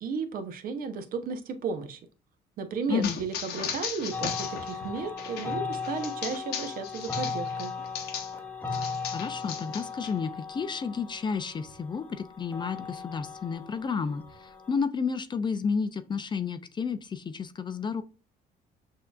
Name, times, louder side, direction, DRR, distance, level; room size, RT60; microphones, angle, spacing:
voice 1, 0.0-2.0 2.6-7.7, right 4 dB, 60° right, 8 dB, 0.8 m, -34 dB
sound 1, 3.0-8.4 8.7-10.1, left 8 dB, 75° left, 0.9 m, -37 dB
sound 2, 4.1-14.8, left 5 dB, 10° left, 0.8 m, -37 dB
voice 2, 8.8-18.0, left 5 dB, 25° left, 11 dB, 0.4 m, -31 dB
6.5 x 2.8 x 2.3 m, 0.34 s
cardioid pair, 110°, 17 cm